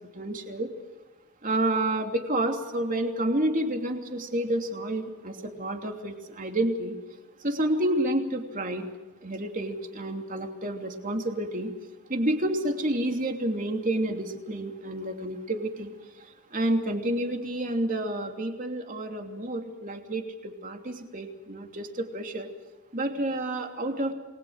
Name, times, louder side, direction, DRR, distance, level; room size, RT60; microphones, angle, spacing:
voice 1, 0.1-0.7 1.4-6.9 7.4-8.8 9.2-11.7 12.1-15.9 16.2-22.5 22.9-24.1, right 1 dB, 35° right, 4 dB, 3.0 m, -29 dB
29.0 x 21.0 x 6.5 m, 1.2 s
head